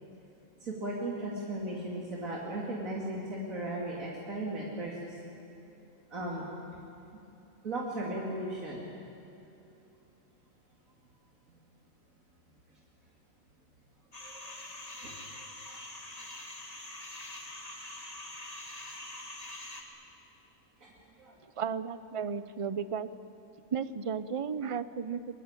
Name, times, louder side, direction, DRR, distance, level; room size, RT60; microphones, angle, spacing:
voice 1, 0.6-5.1 6.1-6.4 7.6-8.8 14.2-14.6 15.0-15.1 15.4-15.5 20.8-21.4, right 1 dB, 80° right, -4 dB, 3.2 m, -37 dB
sound 1, 14.1-19.8, left 1 dB, 30° left, 2.4 m, -44 dB
voice 2, 21.6-23.1 23.7-25.4, right 6 dB, 35° right, 14 dB, 0.6 m, -34 dB
23.0 x 22.5 x 9.0 m, 2.9 s
omnidirectional pair, 1.4 m